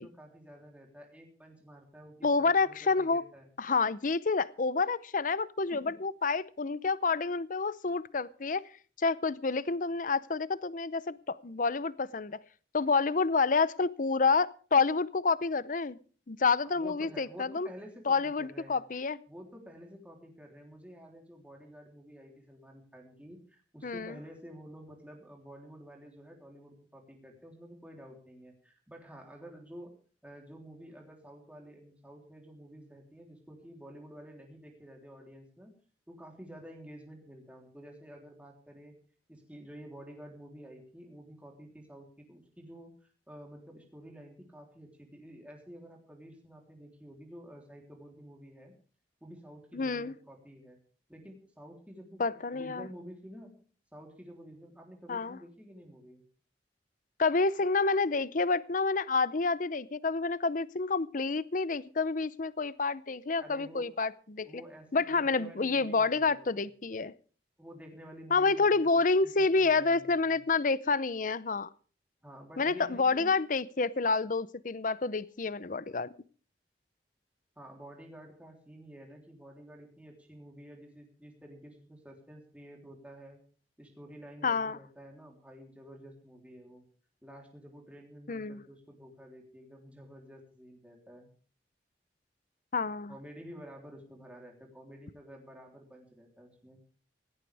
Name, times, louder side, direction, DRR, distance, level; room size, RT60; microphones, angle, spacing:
voice 1, 0.0-3.5 5.7-6.0 16.6-18.8 19.3-29.9 30.2-35.7 36.1-39.0 39.3-48.7 49.2-50.8 51.1-53.5 53.9-56.2 63.4-63.9 64.4-66.7 67.6-68.9 69.2-70.4 72.2-73.3 77.6-83.4 83.8-86.8 87.2-91.3 93.1-96.8, equal, 10° right, 0 dB, 3.5 m, -50 dB
voice 2, 2.2-3.2 3.6-8.6 9.0-12.4 12.7-16.0 16.3-17.7 18.1-19.2 23.8-24.2 49.7-50.1 52.2-52.9 55.1-55.4 57.2-64.6 64.9-67.1 68.3-71.7 72.6-76.1 84.4-84.8 88.3-88.6 92.7-93.1, left 4 dB, 50° left, 18 dB, 0.7 m, -28 dB
17.5 x 17.5 x 3.5 m, 0.41 s
head